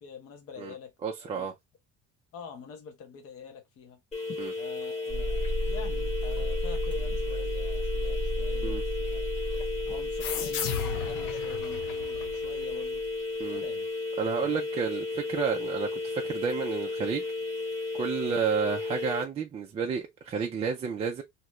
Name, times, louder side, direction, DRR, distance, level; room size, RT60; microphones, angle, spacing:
voice 1, 0.0-1.5 2.3-4.0 4.5-9.3 9.9-13.0 13.5-13.9 14.4-14.7 18.2-18.4, left 6 dB, 45° left, 0.9 m, -45 dB
voice 2, 1.0-1.5 4.4-4.5 8.6-8.8 13.4-13.6 14.2-17.2 17.9-21.2, right 6 dB, 20° right, 0.3 m, -31 dB
sound 1, 4.1-19.2, left 3 dB, 20° left, 1.1 m, -34 dB
sound 2, 5.1-10.6, equal, 5° right, 0.8 m, -32 dB
sound 3, 10.2-13.4, left 7 dB, 75° left, 0.7 m, -35 dB
2.8 x 2.4 x 3.1 m
cardioid pair, 160°, 32 cm